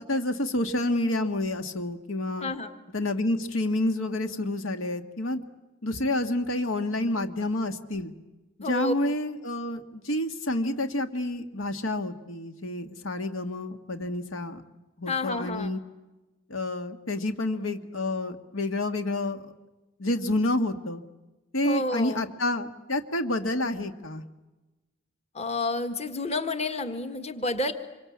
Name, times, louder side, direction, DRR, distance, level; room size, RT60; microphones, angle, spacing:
voice 1, 0.0-2.5 2.9-5.4 5.8-8.1 8.7-14.6 15.0-15.8 16.5-19.4 20.0-21.0 21.5-24.2, left 1 dB, 85° left, 8 dB, 1.8 m, -29 dB
voice 2, 2.4-2.7 8.6-8.9 15.1-15.7 21.6-22.3 25.3-27.7, left 2 dB, 35° left, 8 dB, 1.6 m, -30 dB
26.5 x 24.0 x 8.6 m, 1.1 s
head